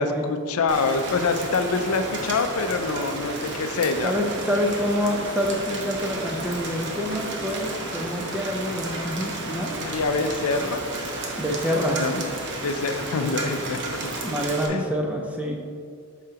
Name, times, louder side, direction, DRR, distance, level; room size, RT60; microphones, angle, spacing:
voice 1, 0.0-4.1 9.8-10.8 11.5-11.6 12.0-12.3 12.6-14.0 14.7-14.9, left 4 dB, 80° left, 8 dB, 0.5 m, -25 dB
Rain, 0.7-14.7, right 2 dB, 55° right, 0.9 m, -32 dB
voice 2, 4.0-9.8 11.4-12.0 14.2-15.6, equal, 5° right, 0 dB, 0.6 m, -27 dB
8.4 x 5.7 x 2.9 m, 2.2 s
head